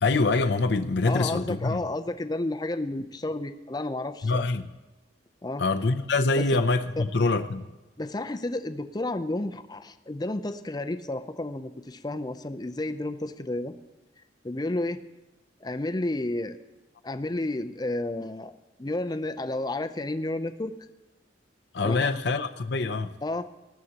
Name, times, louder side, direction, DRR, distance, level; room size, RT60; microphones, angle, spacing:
voice 1, 0.0-1.8 4.2-4.7 5.6-7.6 21.7-23.1, left 3 dB, 65° left, 0.6 m, -25 dB
voice 2, 1.0-4.4 5.4-5.6 6.4-6.5 7.0-7.1 8.0-13.7 14.4-15.0 15.6-16.6 17.0-18.5 18.8-20.7 21.8-22.1 23.2-23.5, left 2 dB, 20° left, 0.5 m, -31 dB
19.0 x 12.5 x 2.9 m
head